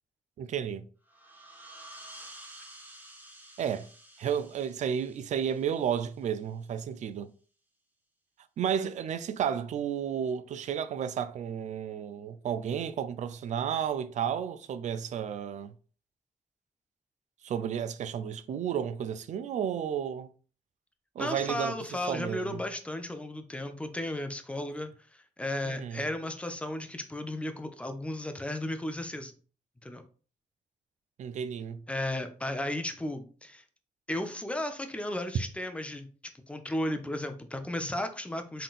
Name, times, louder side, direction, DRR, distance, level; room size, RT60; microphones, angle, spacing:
voice 1, 0.4-0.9 3.6-3.9 4.2-7.3 8.6-15.7 17.4-20.3 21.2-22.6 25.6-26.0 31.2-31.8, right 8 dB, 60° right, 0.4 m, -32 dB
sound 1, 1.1-6.4, right 1 dB, 15° right, 0.8 m, -51 dB
voice 2, 21.2-24.9 25.4-29.3 29.8-30.0 31.9-33.6 34.1-36.1 36.5-38.6, left 1 dB, 10° left, 0.5 m, -34 dB
3.8 x 3.7 x 2.4 m
wide cardioid pair, 140°, 14 cm